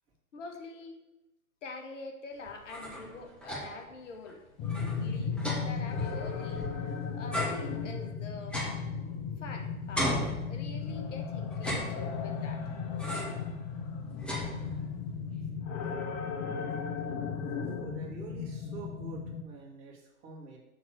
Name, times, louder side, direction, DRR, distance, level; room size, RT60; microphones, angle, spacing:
voice 1, 0.3-1.0 1.6-4.4 4.9-6.7 7.1-8.6 9.4-12.6, left 3 dB, 55° left, 4 dB, 1.5 m, -45 dB
sound 1, 2.5-3.9 4.3-4.4 4.6-6.9 7.3-9.5 9.9-11.0 11.5-12.4 13.0-13.5 13.8-15.0, equal, ahead, 1.8 m, -37 dB
sound 2, 4.6-19.4, left 6 dB, 20° left, 0.6 m, -36 dB
voice 2, 17.6-20.6, right 3 dB, 25° right, -3 dB, 2.2 m, -46 dB
6.4 x 4.2 x 6.3 m, 0.93 s
figure-of-eight pair, 115°, 44 cm